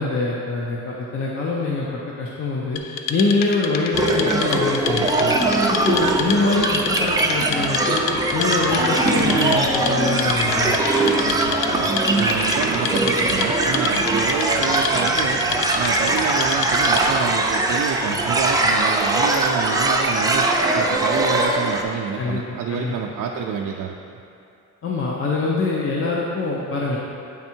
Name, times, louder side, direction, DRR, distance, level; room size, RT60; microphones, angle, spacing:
voice 1, 0.0-2.8 3.1-5.4 5.7-8.0 8.3-10.8 22.2-22.9 24.8-27.0, left 3 dB, 45° left, -4 dB, 0.6 m, -24 dB
Wood, 2.8-17.3, left 6 dB, 85° left, 0.5 m, -29 dB
sound 1, 3.9-21.8, right 2 dB, 10° right, 0.4 m, -21 dB
sound 2, 6.0-18.7, left 1 dB, 70° left, 1.5 m, -40 dB
voice 2, 12.1-15.4 15.7-24.0, right 7 dB, 85° right, 0 dB, 0.5 m, -27 dB
8.7 x 3.6 x 4.4 m, 2.6 s
wide cardioid pair, 160°, 32 cm